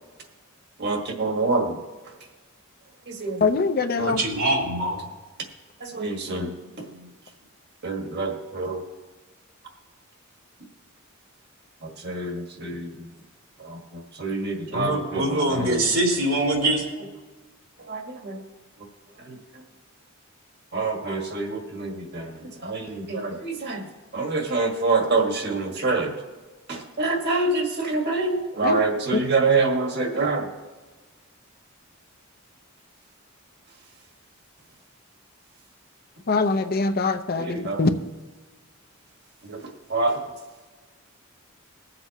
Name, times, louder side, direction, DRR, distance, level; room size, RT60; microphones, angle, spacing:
voice 1, 0.8-1.7 3.1-3.5 4.0-4.2 5.8-6.9 7.8-8.8 11.8-13.1 13.6-15.8 17.9-18.4 19.2-19.6 20.7-23.8 24.1-26.1 26.7-30.5 37.3-37.8 39.4-40.2, right 3 dB, 55° right, 2 dB, 1.7 m, -26 dB
voice 2, 3.4-4.2 28.6-28.8 36.3-37.9, left 3 dB, 45° left, 8 dB, 0.6 m, -23 dB
voice 3, 4.0-5.0 6.9-7.1 14.7-16.8, right 1 dB, 80° right, -1 dB, 2.8 m, -24 dB
21.5 x 7.7 x 3.0 m, 1.3 s
head